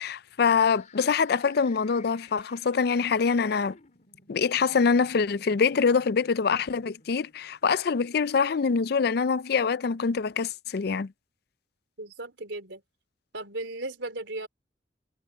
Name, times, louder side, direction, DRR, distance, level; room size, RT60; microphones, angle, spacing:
voice 1, 0.0-3.8 4.3-11.1, left 5 dB, 60° left, 0.5 m, -24 dB
sound 1, 0.6-8.5, left 4 dB, 45° left, 3.8 m, -57 dB
voice 2, 12.0-12.8 13.3-14.5, right 2 dB, 80° right, 4.0 m, -36 dB
head